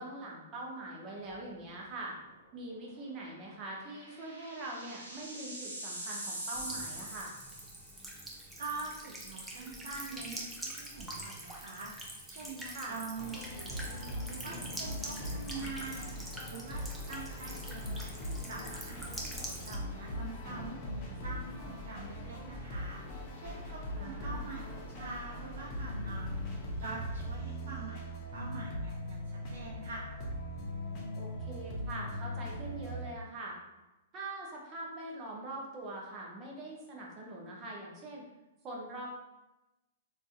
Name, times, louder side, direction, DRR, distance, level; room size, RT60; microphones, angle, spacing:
voice 1, 0.0-2.1 2.5-7.3 12.7-13.0 24.0-24.5 31.2-33.6 34.1-38.2 38.6-39.1, right 2 dB, 30° right, -3 dB, 0.9 m, -43 dB
sound 1, 1.3-1.6 2.0-2.1 3.5-8.2, right 1 dB, 85° right, 1.0 m, -43 dB
Buzz / Water tap faucet / Trickle dribble, 6.5-19.8, right 1 dB, 5° right, 0.6 m, -45 dB
voice 2, 8.6-18.2 18.5-30.1, right 3 dB, 65° right, -1 dB, 0.4 m, -45 dB
sound 2, 13.2-33.1, equal, 35° left, 0.7 m, -40 dB
3.7 x 2.5 x 2.5 m, 1.0 s
figure-of-eight pair, 110°, 0 cm